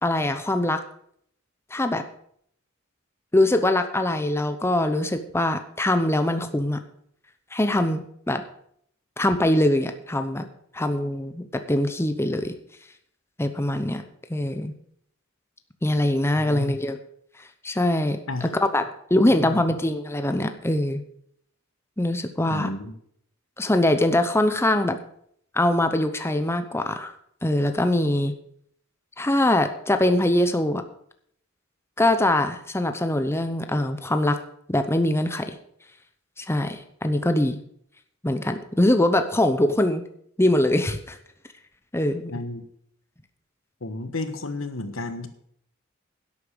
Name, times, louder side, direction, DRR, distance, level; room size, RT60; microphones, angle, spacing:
voice 1, 0.0-0.8 1.7-2.0 3.3-6.8 7.5-8.4 9.2-10.5 10.7-12.6 13.4-14.0 14.3-14.7 15.8-17.0 17.6-18.8 19.1-21.0 22.0-22.7 23.6-25.0 25.5-27.1 27.4-28.3 29.2-30.8 32.0-34.4 34.7-35.6 36.4-37.6 38.2-40.0 40.4-41.2 41.9-42.3, left 1 dB, 15° left, 8 dB, 0.8 m, -23 dB
voice 2, 16.4-16.7 18.3-18.5 19.2-19.7 22.5-22.9 42.3-42.7 43.8-45.3, left 2 dB, 70° left, 9 dB, 1.4 m, -32 dB
11.5 x 8.4 x 6.8 m, 0.67 s
head